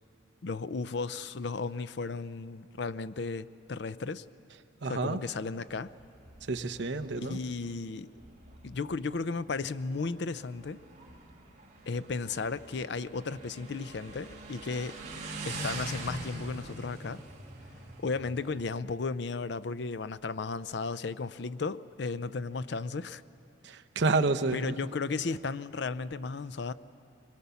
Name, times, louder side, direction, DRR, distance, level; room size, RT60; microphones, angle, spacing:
voice 1, 0.4-4.2 4.8-5.9 7.2-8.1 8.6-10.8 11.9-14.9 15.5-17.2 18.0-23.2 24.5-26.7, left 4 dB, 55° left, 15 dB, 0.5 m, -34 dB
voice 2, 4.8-5.2 6.4-7.4 23.6-24.7, right 3 dB, 60° right, 7 dB, 0.7 m, -29 dB
Motorcycle, 5.7-18.6, right 2 dB, 35° right, 2.4 m, -44 dB
22.5 x 22.0 x 7.0 m, 2.6 s
head